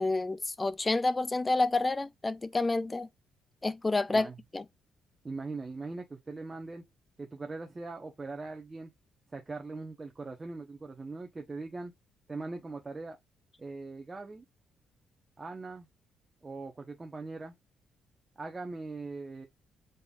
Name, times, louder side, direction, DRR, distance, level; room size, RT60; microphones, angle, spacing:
voice 1, 0.0-3.1 3.6-4.6, left 2 dB, 20° left, 0.3 m, -29 dB
voice 2, 5.2-6.9 7.2-8.9 9.3-11.9 12.3-13.2 13.6-14.4 15.4-15.9 16.4-17.5 18.4-19.5, right 3 dB, 25° right, 0.9 m, -41 dB
5.2 x 4.1 x 2.4 m
cardioid pair, 90°, 0 cm